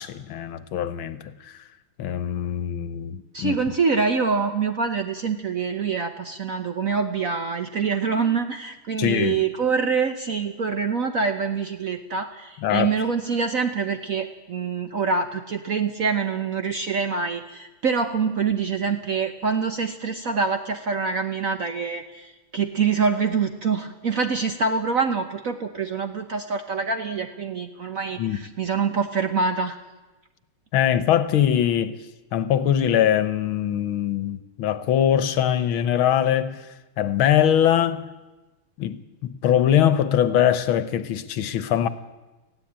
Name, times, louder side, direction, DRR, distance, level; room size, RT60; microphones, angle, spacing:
voice 1, 0.0-1.6 2.0-3.6 9.0-9.4 12.6-12.9 28.2-28.4 30.7-32.0 32.3-36.7 37.0-38.1 38.8-41.9, left 10 dB, 70° left, 1.7 m, -22 dB
voice 2, 3.3-29.8, right 5 dB, 55° right, 1.0 m, -25 dB
20.0 x 15.0 x 8.8 m
omnidirectional pair, 2.4 m